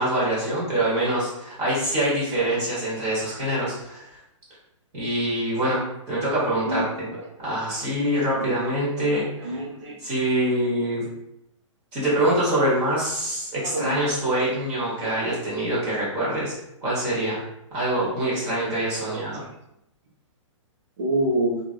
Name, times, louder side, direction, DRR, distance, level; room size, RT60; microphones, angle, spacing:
voice 1, 0.0-4.1 4.9-7.1 7.4-9.6 10.0-11.1 11.9-16.5 16.8-17.4 17.7-19.4, right 1 dB, 25° right, -7 dB, 1.3 m, -25 dB
voice 2, 9.1-10.0 13.7-14.0 19.1-19.2 21.0-21.6, right 1 dB, 65° right, -2 dB, 1.0 m, -26 dB
3.1 x 2.6 x 2.5 m, 0.80 s
hypercardioid pair, 160°, 16 cm